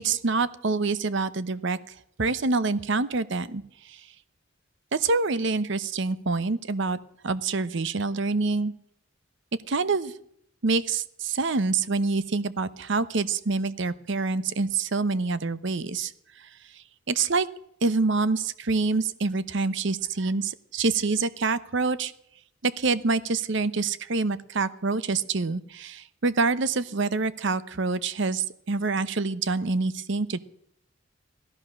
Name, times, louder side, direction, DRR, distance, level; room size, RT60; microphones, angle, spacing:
voice 1, 0.0-1.8 2.2-4.0 4.9-8.7 9.7-10.1 10.6-16.1 16.4-17.5 17.8-22.1 22.6-30.4, right 3 dB, 60° right, 15 dB, 0.8 m, -26 dB
16.5 x 13.5 x 6.4 m, 0.68 s
head